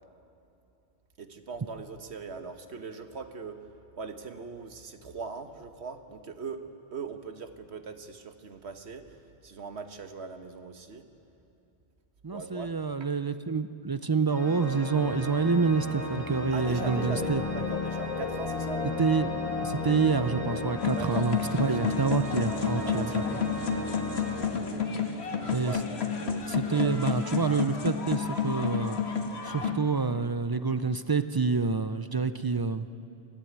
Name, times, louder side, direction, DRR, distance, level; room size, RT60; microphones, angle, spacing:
voice 1, 1.2-3.6 4.0-6.6 6.9-9.0 9.4-11.1 12.3-12.7 16.5-18.8 20.9-21.3 21.5-22.2 22.8-23.6 25.4-25.8 26.2-27.0, right 5 dB, 75° right, 7 dB, 1.5 m, -40 dB
voice 2, 12.2-17.6 19.0-19.3 19.6-23.2 25.5-25.8 26.5-29.1 29.4-32.9, right 4 dB, 40° right, 12 dB, 0.3 m, -27 dB
Organ, 14.3-25.2, equal, 15° left, 1.8 m, -37 dB
sound 1, 16.6-22.2, left 6 dB, 40° left, 0.6 m, -35 dB
sound 2, 20.8-29.7, left 6 dB, 75° left, 1.7 m, -31 dB
23.0 x 15.0 x 9.5 m, 2.7 s
omnidirectional pair, 1.1 m